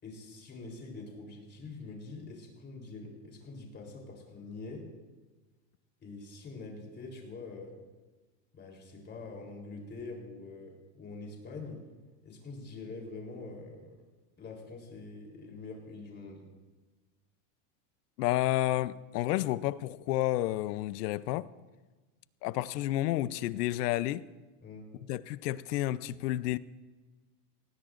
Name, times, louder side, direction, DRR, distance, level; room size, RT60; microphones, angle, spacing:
voice 1, 0.0-4.9 6.0-7.7 8.5-11.8 12.2-14.0 14.4-16.4 24.6-24.9, left 3 dB, 20° left, 3.6 m, -45 dB
voice 2, 18.2-21.5 22.4-24.3 25.1-26.6, left 15 dB, 75° left, 0.7 m, -30 dB
20.0 x 18.5 x 2.5 m
supercardioid pair, 155°, 47 cm